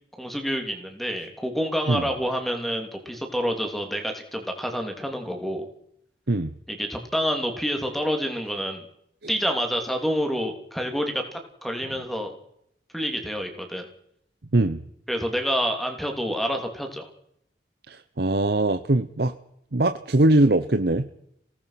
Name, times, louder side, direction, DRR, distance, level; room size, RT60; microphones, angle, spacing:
voice 1, 0.2-5.7 6.7-8.9 9.3-12.3 12.9-13.8 15.1-17.1, equal, ahead, 4 dB, 3.0 m, -28 dB
voice 2, 17.9-19.3 19.7-21.1, right 2 dB, 60° right, 10 dB, 0.8 m, -21 dB
26.5 x 18.0 x 5.9 m, 0.74 s
head